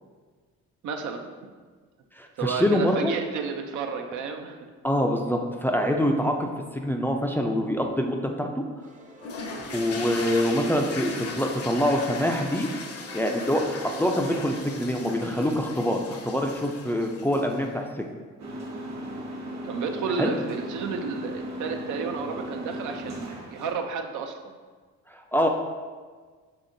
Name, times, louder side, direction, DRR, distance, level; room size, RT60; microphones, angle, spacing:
voice 1, 0.8-1.3 2.4-4.7 19.6-24.5, right 5 dB, 80° right, 4 dB, 0.6 m, -32 dB
voice 2, 2.2-3.1 4.8-6.5 6.7-8.5 9.7-12.7 13.1-17.9 20.2-20.3 25.1-25.5, equal, 5° left, 2 dB, 0.3 m, -25 dB
sound 1, 8.8-10.1 10.4-15.6, right 1 dB, 25° right, 0.7 m, -43 dB
sound 2, 9.2-17.7, left 4 dB, 50° left, 0.6 m, -38 dB
sound 3, 18.4-23.7, equal, 60° right, 1.1 m, -36 dB
5.7 x 3.5 x 2.6 m, 1.5 s
cardioid pair, 90°, 30 cm